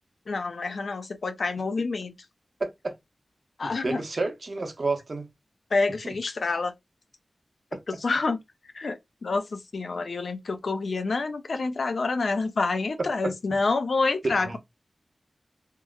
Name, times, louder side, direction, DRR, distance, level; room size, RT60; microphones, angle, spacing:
voice 1, 0.3-2.1 3.6-4.0 5.7-6.7 7.9-8.4 8.7-14.6, left 3 dB, 75° left, 0.4 m, -28 dB
voice 2, 2.6-2.9 3.6-5.3 6.0-6.1 13.2-13.3 14.2-14.6, right 3 dB, 55° right, 0.6 m, -30 dB
2.9 x 2.1 x 2.3 m
wide cardioid pair, 75°, 0 cm